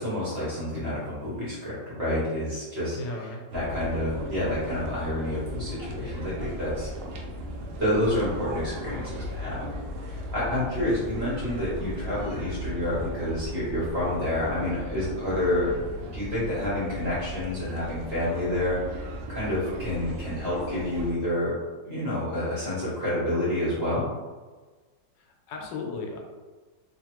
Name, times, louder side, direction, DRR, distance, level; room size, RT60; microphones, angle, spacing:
voice 1, 0.0-6.9 7.8-9.7 10.0-21.6 21.9-24.1, left 1 dB, 45° right, -9 dB, 1.0 m, -29 dB
voice 2, 2.9-3.4 25.5-26.2, left 3 dB, 85° left, 1 dB, 1.3 m, -35 dB
sound 1, 3.5-21.1, equal, 85° right, 1.3 m, -36 dB
3.0 x 2.4 x 2.9 m, 1.3 s
omnidirectional pair, 1.9 m